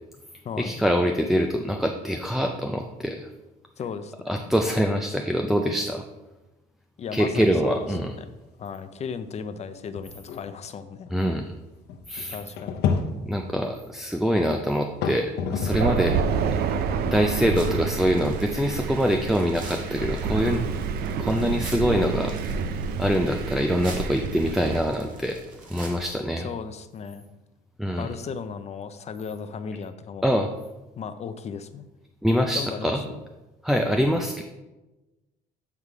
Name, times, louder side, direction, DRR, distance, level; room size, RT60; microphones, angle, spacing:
voice 1, 0.6-3.3 4.3-6.0 7.1-8.1 11.1-11.5 12.1-12.4 13.3-16.2 17.0-20.6 21.2-22.3 23.0-25.4 25.7-26.5 27.8-28.1 30.2-30.5 32.2-33.0 33.6-34.4, equal, ahead, 3 dB, 0.4 m, -24 dB
voice 2, 3.8-4.1 7.0-8.3 8.6-11.1 12.3-12.8 16.1-16.6 26.4-27.2 28.0-30.3 31.0-31.9 32.5-33.2, left 6 dB, 40° left, 10 dB, 0.6 m, -36 dB
sound 1, 7.8-8.3 8.6-8.7 9.4-9.5 10.0-16.0 16.4-20.7, left 6 dB, 75° left, 0.7 m, -33 dB
Thunder, 15.7-24.8, right 6 dB, 70° right, 0.5 m, -28 dB
sound 2, 17.5-26.2, right 2 dB, 50° right, 1.7 m, -44 dB
8.1 x 3.7 x 4.6 m, 1.1 s
cardioid pair, 110°, 17 cm